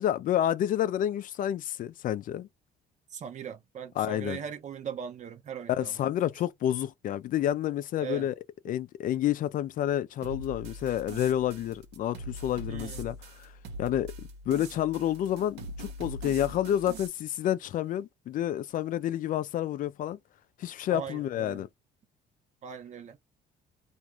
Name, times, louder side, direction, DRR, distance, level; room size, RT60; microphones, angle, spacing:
voice 1, 0.0-2.5 4.0-4.4 5.7-8.3 8.6-13.5 13.8-14.1 14.5-20.2 20.6-21.7, left 11 dB, 55° left, 0.4 m, -29 dB
voice 2, 3.1-5.9 8.0-8.3 12.7-13.1 20.9-21.6 22.6-23.2, right 8 dB, 45° right, 0.6 m, -39 dB
sound 1, 10.2-17.1, right 1 dB, 85° right, 0.9 m, -42 dB
2.5 x 2.3 x 3.1 m
cardioid pair, 110°, 17 cm